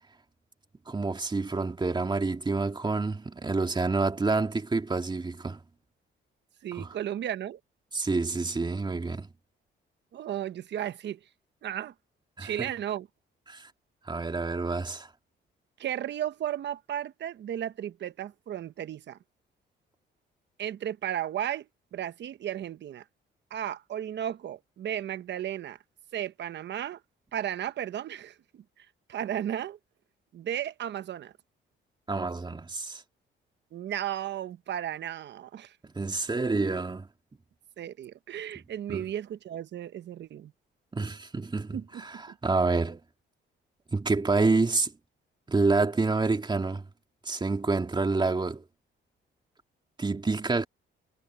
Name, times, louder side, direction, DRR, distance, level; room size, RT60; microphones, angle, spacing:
voice 1, 0.9-5.6 6.7-6.9 7.9-9.3 12.4-12.7 13.5-13.7 14.1-15.1 32.1-33.0 35.8-37.1 38.9-39.1 40.9-43.0 43.9-44.9 45.5-46.9 47.3-48.6 50.0-50.7, right 3 dB, 20° right, 2.7 m, -28 dB
voice 2, 6.6-7.6 10.1-11.2 11.6-11.9 12.4-13.1 15.8-19.2 20.6-21.7 21.9-23.0 23.5-25.8 26.1-27.0 27.3-29.8 30.3-31.3 33.7-35.8 37.8-40.5 41.7-42.4, right 10 dB, 60° right, 1.0 m, -34 dB
cardioid pair, 90°, 20 cm